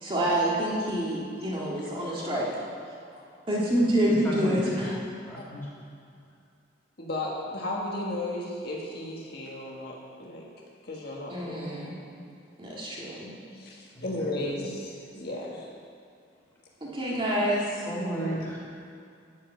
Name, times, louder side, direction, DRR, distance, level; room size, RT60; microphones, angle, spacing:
voice 1, 0.0-2.5 3.5-4.9 11.3-11.9 12.6-13.3 16.8-17.6, right 1 dB, 25° right, -5 dB, 1.9 m, -27 dB
voice 2, 4.2-4.9 5.2-5.6 14.0-14.3 17.9-18.6, equal, 10° left, -6 dB, 3.4 m, -33 dB
voice 3, 7.0-10.5 10.8-11.6 13.5-15.7, left 1 dB, 55° left, -3 dB, 1.5 m, -35 dB
12.5 x 5.4 x 9.2 m, 2.3 s
head